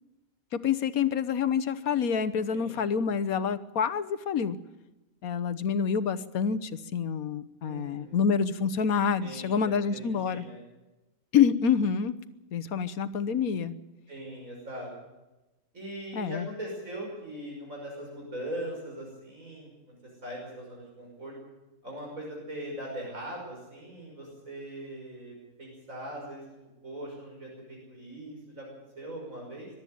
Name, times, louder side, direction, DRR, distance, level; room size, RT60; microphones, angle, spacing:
voice 1, 0.6-4.6 5.2-10.4 11.3-12.2 12.5-13.7 16.1-16.5, left 7 dB, 90° left, 13 dB, 1.5 m, -27 dB
voice 2, 7.6-8.3 9.2-10.6 14.1-14.9 15.7-20.0 20.2-21.3 21.8-26.5 26.8-29.7, right 1 dB, 70° right, -1 dB, 6.4 m, -40 dB
22.0 x 12.5 x 9.3 m, 1.0 s
omnidirectional pair, 1.5 m